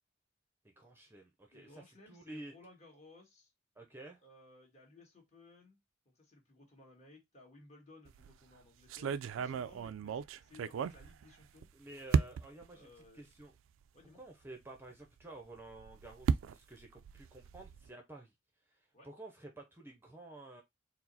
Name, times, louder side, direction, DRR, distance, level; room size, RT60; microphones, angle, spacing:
voice 1, 0.6-2.5 3.8-4.2 11.7-13.5 14.1-18.3 18.7-20.6, right 2 dB, 10° right, 0.6 m, -51 dB
voice 2, 1.5-3.5 4.2-5.8 6.0-11.7 12.7-13.3 13.9-14.2 18.9-19.1, left 2 dB, 35° left, 1.5 m, -59 dB
sound 1, 8.1-8.4 8.9-11.7 12.1-12.7 13.4-13.5 13.8-13.9 15.6-17.9, right 6 dB, 85° right, 0.3 m, -35 dB
4.7 x 2.0 x 4.0 m
head